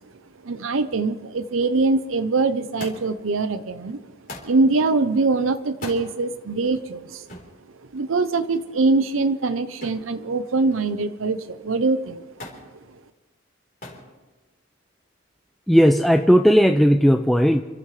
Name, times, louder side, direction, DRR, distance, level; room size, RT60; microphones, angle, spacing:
voice 1, 0.4-4.0 4.4-7.3 7.9-12.2, right 3 dB, 85° right, 11 dB, 0.7 m, -23 dB
Thump thud, 2.8-3.3 4.3-4.6 5.7-6.1 7.3-7.5 9.8-10.1 10.5-11.0 12.4-12.7 13.8-14.1 15.0-15.5 16.5-16.6, left 1 dB, 40° left, 4.0 m, -39 dB
voice 2, 15.7-17.6, equal, ahead, 5 dB, 0.4 m, -16 dB
29.0 x 13.5 x 3.3 m, 1.3 s
head